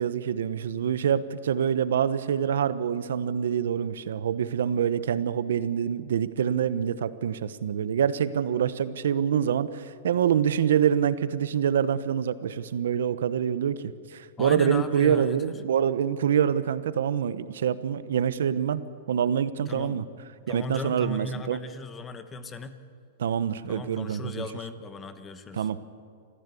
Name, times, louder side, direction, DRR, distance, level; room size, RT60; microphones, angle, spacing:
voice 1, 0.0-18.8 19.1-20.0 20.5-21.6 23.2-24.4 25.5-25.8, right 8 dB, 85° right, 14 dB, 1.0 m, -26 dB
voice 2, 14.4-15.4 19.7-20.0 20.5-22.8 23.7-25.7, left 4 dB, 15° left, 10 dB, 1.2 m, -37 dB
26.0 x 15.0 x 8.4 m, 2.3 s
supercardioid pair, 160°, 0 cm